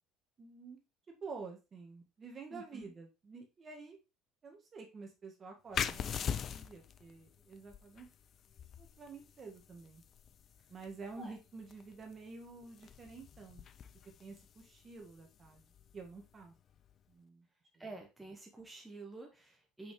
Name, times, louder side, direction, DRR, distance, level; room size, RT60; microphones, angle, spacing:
voice 1, 0.4-0.8 1.1-4.0 4.4-8.1 8.8-10.0 10.7-13.6 14.2-15.6 15.9-16.5 17.1-17.5, right 4 dB, 35° right, 2 dB, 1.7 m, -49 dB
voice 2, 2.5-2.9 11.2-11.3 17.8-19.9, right 2 dB, 10° right, 1 dB, 1.4 m, -49 dB
sound 1, 5.7-17.0, left 8 dB, 45° left, 0.5 m, -44 dB
5.8 x 5.2 x 3.2 m, 0.27 s
supercardioid pair, 105°, 0 cm